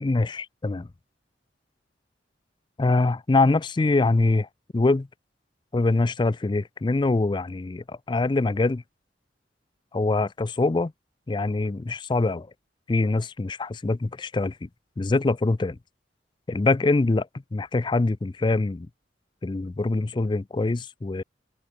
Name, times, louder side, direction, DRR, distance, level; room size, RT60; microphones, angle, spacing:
voice 1, 0.0-0.9 2.8-4.5 4.7-5.1 5.7-8.8 9.9-10.9 11.3-12.5 12.9-14.7 15.0-15.8 16.5-18.9 19.4-21.2, left 3 dB, 25° left, 0.4 m, -24 dB
open air
head